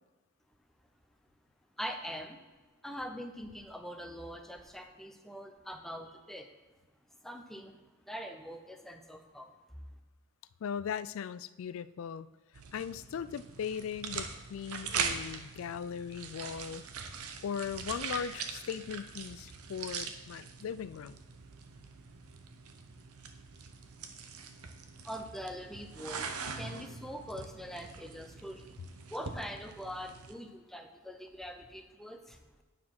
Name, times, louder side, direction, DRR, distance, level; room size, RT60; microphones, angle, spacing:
voice 1, 1.8-2.4 2.8-6.5 7.2-7.7 8.0-9.5 25.0-28.8 29.1-32.6, equal, ahead, 5 dB, 0.5 m, -43 dB
voice 2, 10.6-12.3 12.7-16.8 17.4-21.2, left 7 dB, 65° left, 16 dB, 0.3 m, -38 dB
sound 1, 12.5-30.3, right 6 dB, 85° right, 0.8 m, -42 dB
9.5 x 4.6 x 5.8 m, 1.2 s
head